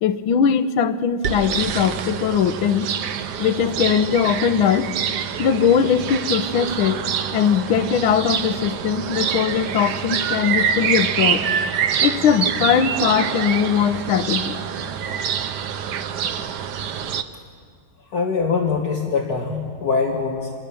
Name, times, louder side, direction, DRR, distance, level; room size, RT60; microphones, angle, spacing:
voice 1, 0.0-2.9 3.4-4.9 5.4-7.1 7.3-11.5 12.0-14.6, left 7 dB, 85° left, 11 dB, 1.7 m, -20 dB
sound 1, 1.2-17.2, right 8 dB, 60° right, 1.3 m, -26 dB
voice 2, 18.1-20.5, left 4 dB, 50° left, 1 dB, 1.9 m, -23 dB
28.0 x 19.0 x 7.0 m, 2.1 s
omnidirectional pair, 2.2 m